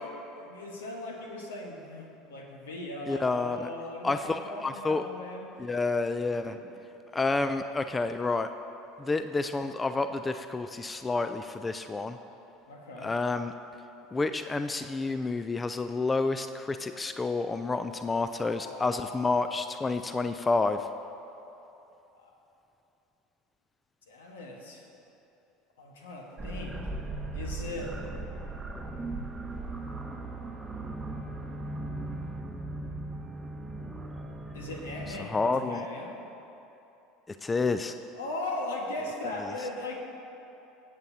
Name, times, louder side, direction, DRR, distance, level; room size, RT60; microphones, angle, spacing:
voice 1, 0.0-5.5 6.4-6.7 12.7-13.1 18.5-19.1 19.4-19.6 22.1-22.3 24.1-24.8 25.8-26.8 27.3-28.0 34.5-36.2 38.1-39.9, left 2 dB, 85° left, 0 dB, 1.3 m, -39 dB
voice 2, 3.1-3.7 4.0-5.0 5.6-6.6 7.1-8.5 9.0-12.2 13.0-13.5 14.1-20.9 35.1-35.9 37.3-37.9, left 3 dB, 20° left, 9 dB, 0.4 m, -29 dB
sound 1, 26.4-35.2, right 2 dB, 15° right, 0.9 m, -38 dB
16.5 x 7.8 x 2.8 m, 3.0 s
hypercardioid pair, 80°, 0 cm